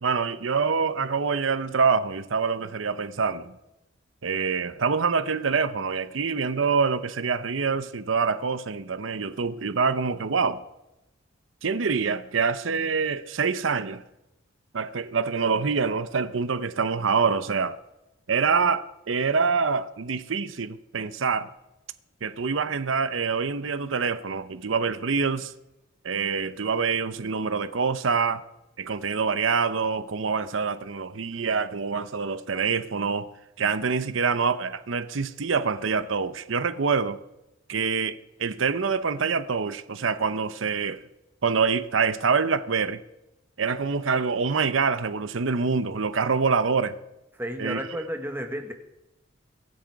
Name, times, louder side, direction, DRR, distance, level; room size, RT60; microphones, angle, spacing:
voice 1, 0.0-3.5 4.2-10.6 11.6-14.0 14.7-17.8 18.3-21.5 22.2-25.5 26.0-28.4 28.8-33.3 33.6-37.2 37.7-41.0 41.4-43.0 43.6-47.0 47.6-47.8, right 5 dB, 90° right, 0.7 m, -25 dB
voice 2, 47.4-48.7, equal, 10° right, 1.4 m, -32 dB
23.0 x 7.7 x 4.7 m
head